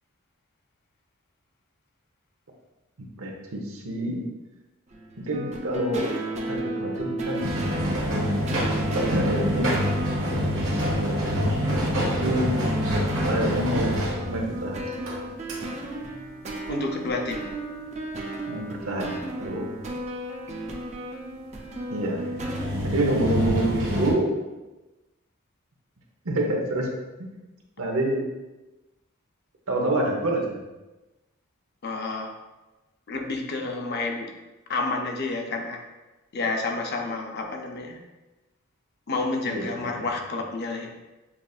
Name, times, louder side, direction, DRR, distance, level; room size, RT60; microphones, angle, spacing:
voice 1, 3.0-4.2 5.2-6.1 6.5-7.5 9.1-9.7 10.3-11.8 12.2-12.6 13.1-13.9 14.2-14.8 18.5-19.7 21.9-22.3 22.8-24.3 26.2-26.9 27.8-28.3 29.7-30.6 39.5-39.9, right 1 dB, 90° right, 0 dB, 0.8 m, -27 dB
sound 1, 4.9-22.7, right 1 dB, 35° right, 0.5 m, -34 dB
sound 2, 7.4-15.2 15.5-15.6 22.0-24.1, equal, 65° right, 1.1 m, -26 dB
voice 2, 16.7-17.5 31.8-32.3 33.1-34.3 34.7-35.8 36.3-38.0 39.1-41.0, left 3 dB, 50° left, 2 dB, 0.6 m, -29 dB
7.0 x 2.5 x 2.4 m, 1.1 s
head